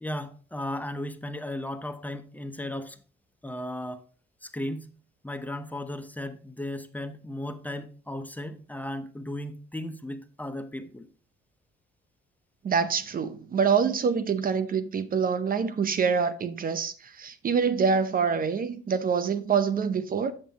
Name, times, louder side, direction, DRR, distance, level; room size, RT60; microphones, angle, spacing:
voice 1, 0.0-3.0 3.4-4.0 4.4-4.9 5.2-11.1, left 1 dB, 10° left, 0.8 m, -35 dB
voice 2, 12.6-20.3, right 6 dB, 45° right, 0.8 m, -26 dB
8.2 x 7.6 x 2.9 m
cardioid pair, 90°, 20 cm